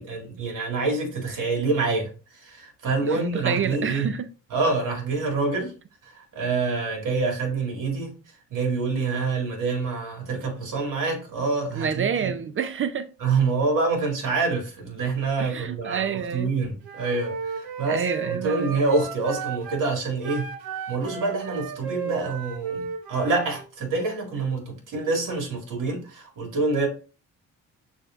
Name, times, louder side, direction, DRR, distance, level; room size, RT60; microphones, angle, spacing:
voice 1, 0.0-4.1 4.5-5.7 6.0-8.1 8.5-12.3 13.2-20.5 20.9-26.9, right 3 dB, 60° right, 2.0 m, -26 dB
voice 2, 3.0-4.3 11.7-13.1 15.4-16.5 17.9-18.7, right 7 dB, 35° right, 0.4 m, -28 dB
Wind instrument woodwind instrument, 16.8-19.8 20.2-23.6, right 6 dB, 85° right, 0.8 m, -35 dB
6.3 x 2.7 x 2.4 m
cardioid pair, 80°, 35 cm